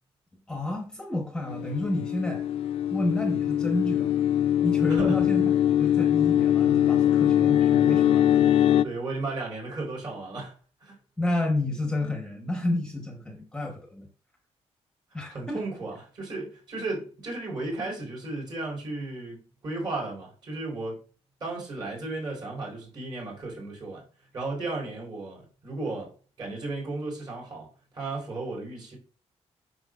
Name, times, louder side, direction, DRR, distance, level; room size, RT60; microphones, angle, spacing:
voice 1, 0.5-2.4 2.9-4.3 4.6-5.5 5.8-8.5 11.2-14.1 15.1-15.6, left 1 dB, 5° left, 1.0 m, -30 dB
sound 1, 1.5-8.8, left 11 dB, 60° left, 0.4 m, -22 dB
voice 2, 4.9-5.2 8.8-10.5 10.8-11.0 15.3-21.0 21.4-24.0 24.3-26.1 26.4-29.0, right 2 dB, 40° right, 3.8 m, -34 dB
7.9 x 6.2 x 2.4 m
cardioid pair, 165°, 11 cm